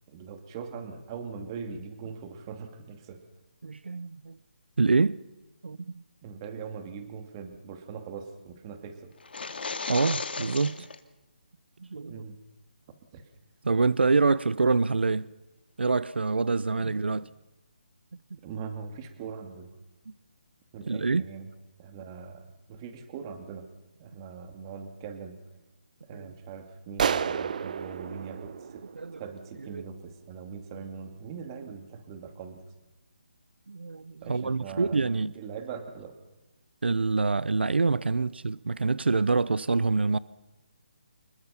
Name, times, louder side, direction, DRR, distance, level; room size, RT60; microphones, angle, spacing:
voice 1, 0.1-3.2 6.2-9.1 12.1-12.4 13.1-13.2 18.4-19.7 20.7-21.5 21.8-23.7 24.0-25.4 26.1-28.9 29.2-32.6 34.2-36.2 38.1-38.3, right 6 dB, 25° right, 2.5 m, -41 dB
voice 2, 3.6-4.4 4.8-5.2 5.6-6.0 9.9-10.9 11.8-12.2 13.6-15.3 15.8-17.3 20.9-21.2 26.1-26.3 29.0-29.2 29.7-29.8 33.7-35.3 36.8-40.2, right 4 dB, 90° right, 0.6 m, -26 dB
sound 1, 9.2-11.0, left 4 dB, 75° left, 2.1 m, -35 dB
sound 2, 27.0-29.6, right 7 dB, 45° right, 0.8 m, -31 dB
26.0 x 21.5 x 5.8 m
hypercardioid pair, 160°, 6 cm